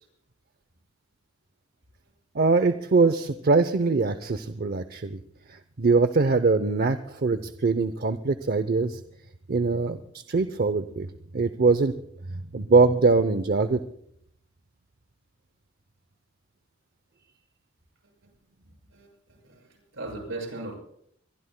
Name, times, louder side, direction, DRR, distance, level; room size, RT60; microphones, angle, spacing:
voice 1, 2.3-5.2 5.5-9.0 9.5-10.0 10.3-11.1 11.3-11.9 12.3-13.8, right 4 dB, 50° right, 11 dB, 0.6 m, -22 dB
voice 2, 18.9-20.7, right 2 dB, 70° right, 1 dB, 6.5 m, -38 dB
22.5 x 22.0 x 2.2 m, 0.70 s
head